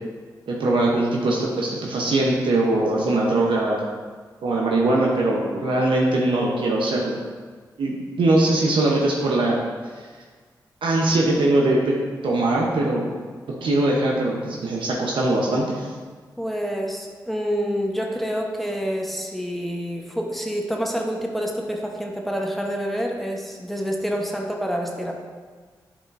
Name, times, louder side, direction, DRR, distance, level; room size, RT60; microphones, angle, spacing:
voice 1, 0.5-3.8 4.4-7.2 7.8-9.6 10.8-12.0 12.2-13.0 13.6-15.9, right 2 dB, 75° right, -2 dB, 0.8 m, -21 dB
voice 2, 16.4-25.1, equal, ahead, 0 dB, 1.0 m, -27 dB
8.6 x 4.8 x 2.6 m, 1.5 s
supercardioid pair, 40°, 9 cm